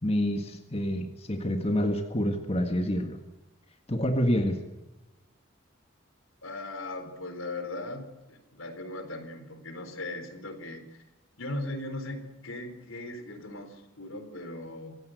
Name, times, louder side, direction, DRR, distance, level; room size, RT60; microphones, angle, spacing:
voice 1, 0.0-3.2 3.9-4.6, equal, 30° left, 5 dB, 1.7 m, -27 dB
voice 2, 6.4-11.0 11.4-15.0, left 2 dB, 80° left, 8 dB, 4.0 m, -38 dB
25.0 x 17.0 x 7.9 m, 1.0 s
head